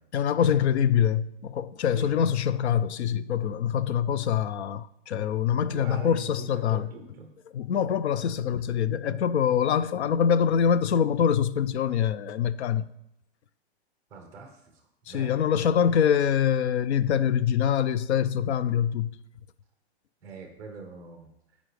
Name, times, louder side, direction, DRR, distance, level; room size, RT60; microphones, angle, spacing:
voice 1, 0.1-6.9 7.5-12.9 15.1-19.1, left 8 dB, 85° left, 0.6 m, -24 dB
voice 2, 1.9-2.3 5.5-7.3 8.6-8.8 14.1-15.7 20.2-21.6, right 4 dB, 10° right, 0.7 m, -44 dB
15.5 x 5.3 x 3.3 m
supercardioid pair, 180°, 33 cm